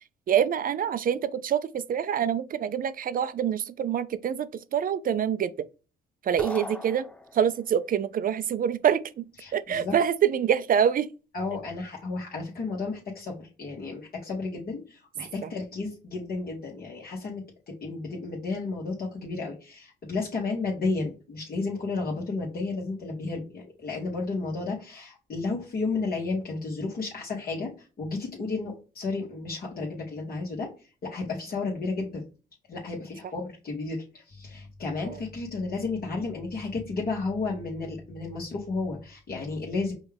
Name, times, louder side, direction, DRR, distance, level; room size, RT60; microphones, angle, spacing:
voice 1, 0.3-5.7 6.2-7.1 7.3-11.1 15.4-15.5 35.1-35.2, right 8 dB, 45° right, 0.5 m, -26 dB
sound 1, 6.4-7.7, left 2 dB, 5° left, 0.5 m, -39 dB
voice 2, 9.4-9.9 11.3-27.7 28.0-32.2 32.7-39.9, left 3 dB, 50° left, 1.4 m, -32 dB
5.2 x 2.4 x 3.4 m
cardioid pair, 90°, 20 cm